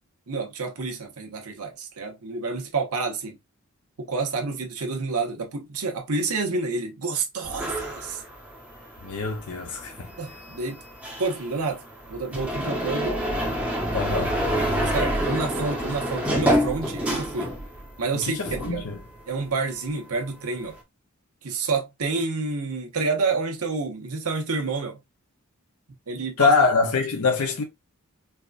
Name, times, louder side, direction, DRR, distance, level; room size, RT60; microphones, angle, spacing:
voice 1, 0.3-3.4 4.0-8.2 10.2-10.8 11.2-11.8 12.1-13.2 14.8-17.5 18.0-18.9 19.3-20.8 21.4-25.0 26.1-26.5, right 4 dB, 80° right, 1.1 m, -29 dB
sound 1, 7.4-18.0 18.3-19.6, equal, 5° right, 0.9 m, -28 dB
voice 2, 9.0-10.1 13.9-14.3 18.1-19.0 26.4-27.6, left 4 dB, 80° left, 0.7 m, -24 dB
4.6 x 2.4 x 2.5 m
head